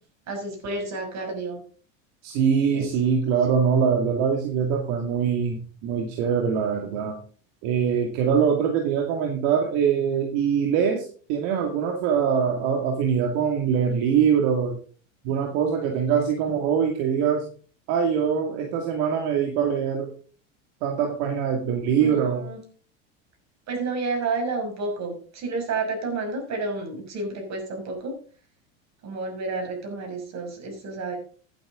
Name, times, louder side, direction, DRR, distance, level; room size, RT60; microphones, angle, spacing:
voice 1, 0.3-1.6 2.7-2.9 22.0-22.6 23.7-28.2 29.0-31.2, right 3 dB, 45° right, 3 dB, 6.1 m, -30 dB
voice 2, 2.2-7.2 7.6-14.8 15.2-17.4 17.9-20.1 20.8-22.4, right 7 dB, 65° right, 2 dB, 2.4 m, -23 dB
15.0 x 9.3 x 3.8 m, 0.42 s
supercardioid pair, 100°, 39 cm